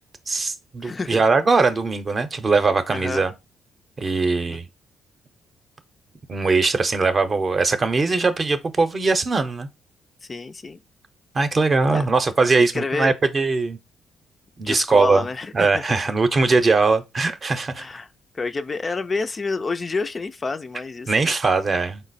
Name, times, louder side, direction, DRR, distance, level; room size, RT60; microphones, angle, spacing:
voice 1, 0.3-3.3 4.0-4.7 6.3-9.7 11.3-13.8 14.6-15.3 15.5-17.9 21.1-22.0, right 3 dB, 35° right, 0.6 m, -20 dB
voice 2, 0.8-1.2 2.9-3.3 4.5-4.6 10.3-10.8 11.9-12.1 12.7-13.1 14.6-16.0 17.8-18.1 18.3-21.3, left 3 dB, 30° left, 0.3 m, -28 dB
4.4 x 2.0 x 4.0 m
cardioid pair, 90°, 0 cm